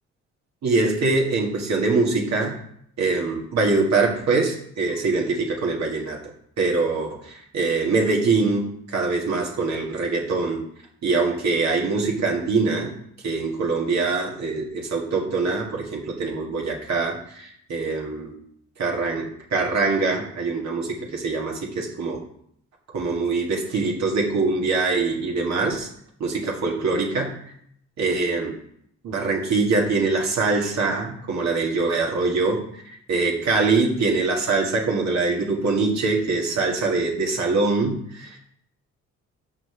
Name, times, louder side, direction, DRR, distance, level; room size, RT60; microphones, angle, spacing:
voice 1, 0.6-2.5 3.0-6.2 6.6-10.6 11.0-12.9 13.2-18.3 18.8-22.2 22.9-25.9 26.2-27.3 28.0-28.5 29.0-32.8 33.1-38.4, right 3 dB, 65° right, 0 dB, 1.9 m, -23 dB
6.6 x 6.0 x 5.8 m, 0.69 s
cardioid pair, 90°, 30 cm